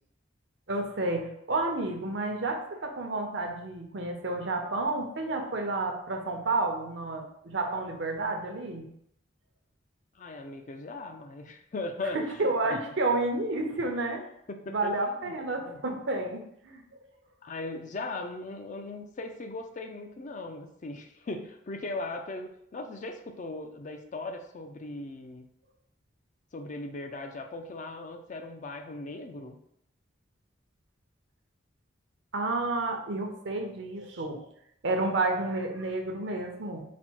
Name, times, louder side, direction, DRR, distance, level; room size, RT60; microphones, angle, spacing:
voice 1, 0.7-8.9 12.1-14.2 14.7-17.0 32.3-34.4 34.8-36.8, right 2 dB, 65° right, 3 dB, 0.7 m, -30 dB
voice 2, 10.2-12.8 14.5-15.8 17.4-25.5 26.5-29.6, left 2 dB, 40° left, 5 dB, 0.4 m, -39 dB
4.1 x 2.1 x 4.4 m, 0.74 s
head